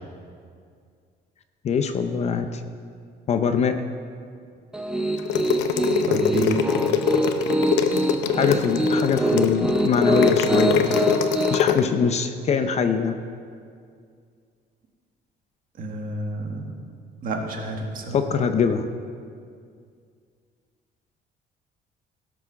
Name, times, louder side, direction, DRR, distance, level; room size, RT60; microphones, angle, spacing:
voice 1, 1.6-2.6 3.3-3.8 8.3-10.9 11.5-13.2 18.1-18.9, left 6 dB, 40° left, 9 dB, 0.6 m, -23 dB
Piano, 4.7-11.6, right 1 dB, 5° right, 0.7 m, -24 dB
sound 1, 5.2-11.8, left 9 dB, 90° left, 0.8 m, -23 dB
voice 2, 6.0-6.6 15.8-16.6 17.2-18.2, right 2 dB, 55° right, 1 dB, 1.7 m, -29 dB
17.0 x 6.1 x 5.9 m, 2.2 s
cardioid pair, 150°, 18 cm